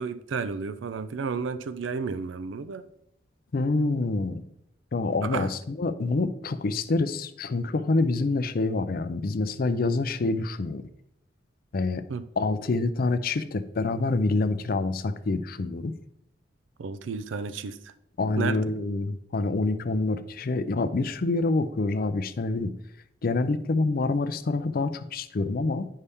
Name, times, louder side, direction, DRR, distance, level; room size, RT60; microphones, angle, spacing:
voice 1, 0.0-2.9 5.2-5.5 12.1-12.2 16.8-17.9 18.4-18.8, right 5 dB, 80° right, 14 dB, 0.4 m, -32 dB
voice 2, 3.5-4.4 4.9-10.8 11.7-12.0 12.4-15.9 18.2-22.7 23.2-25.9, left 3 dB, 50° left, 12 dB, 0.5 m, -26 dB
9.7 x 5.5 x 3.5 m, 0.76 s
head